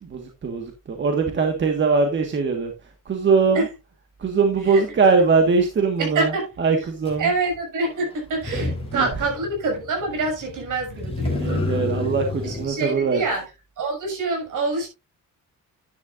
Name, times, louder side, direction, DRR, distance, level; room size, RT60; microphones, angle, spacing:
voice 1, 0.0-2.7 3.0-3.7 4.2-6.3 6.6-7.3 8.5-8.6 8.9-9.1 11.3-13.2, right 4 dB, 35° right, 1.5 m, -21 dB
voice 2, 6.0-6.5 7.2-11.6 12.4-13.4 13.8-14.9, right 3 dB, 65° right, 6.4 m, -26 dB
Motor vehicle (road), 7.1-7.2 8.3-12.7, left 3 dB, 15° left, 3.0 m, -29 dB
11.0 x 10.5 x 2.5 m
cardioid pair, 180°, 33 cm